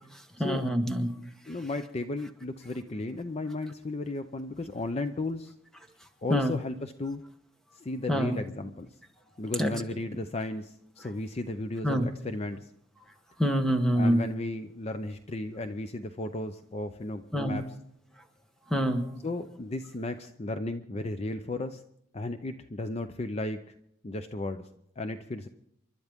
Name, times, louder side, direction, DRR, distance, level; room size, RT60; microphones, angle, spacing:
voice 1, 0.4-1.1 6.3-6.6 8.1-8.4 9.6-9.8 11.8-12.1 13.4-14.2 17.3-17.6 18.7-19.1, equal, 5° left, 6 dB, 1.2 m, -26 dB
voice 2, 1.5-5.5 6.2-7.2 7.7-8.9 9.4-12.7 14.0-17.6 19.2-21.8 22.1-23.7 24.0-24.7 25.0-25.5, left 2 dB, 30° left, 9 dB, 0.5 m, -34 dB
29.5 x 12.0 x 3.6 m, 0.76 s
head